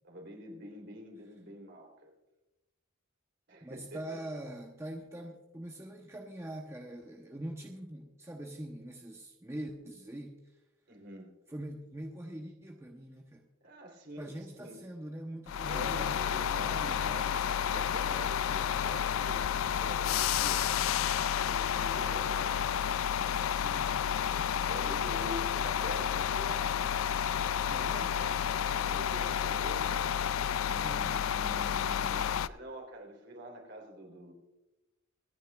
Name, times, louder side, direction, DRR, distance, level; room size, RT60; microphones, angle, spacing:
voice 1, 0.0-2.1 3.5-4.0 10.9-11.3 13.6-14.8 15.6-17.3 17.7-19.5 19.8-20.9 21.4-22.7 24.2-26.8 27.4-28.4 28.8-30.1 30.6-34.3, equal, 55° right, 1 dB, 3.5 m, -46 dB
voice 2, 3.6-10.4 11.5-13.4 14.2-17.3 23.6-24.0 24.7-25.1 27.7-28.1 30.7-31.0, right 1 dB, 15° right, 1 dB, 0.9 m, -43 dB
sound 1, 15.5-32.5, left 9 dB, 80° left, 0.4 m, -31 dB
26.0 x 10.0 x 2.4 m, 0.99 s
head